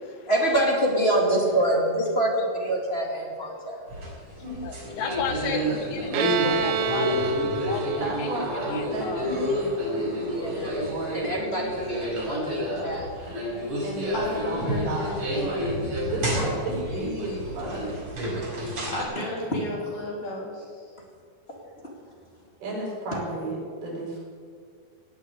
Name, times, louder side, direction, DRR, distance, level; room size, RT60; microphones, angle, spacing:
voice 1, 0.3-3.8 10.3-13.1 18.4-18.6, right 1 dB, 20° left, -2 dB, 1.7 m, -26 dB
sound 1, 3.9-19.0, equal, 35° right, 5.4 m, -30 dB
voice 2, 4.6-8.4 8.7-9.3 12.1-12.2 17.3-17.4, left 5 dB, 85° left, 5 dB, 3.4 m, -33 dB
Bowed string instrument, 6.1-9.7, right 5 dB, 70° right, 2.2 m, -29 dB
voice 3, 8.0-11.7 13.8-15.3 16.0-17.8 22.6-24.2, right 2 dB, 90° right, -3 dB, 6.9 m, -33 dB
voice 4, 13.5-15.8 16.0-16.1 18.9-20.9, left 1 dB, 60° left, -3 dB, 4.7 m, -34 dB
18.5 x 6.4 x 9.7 m, 2.1 s
omnidirectional pair, 4.3 m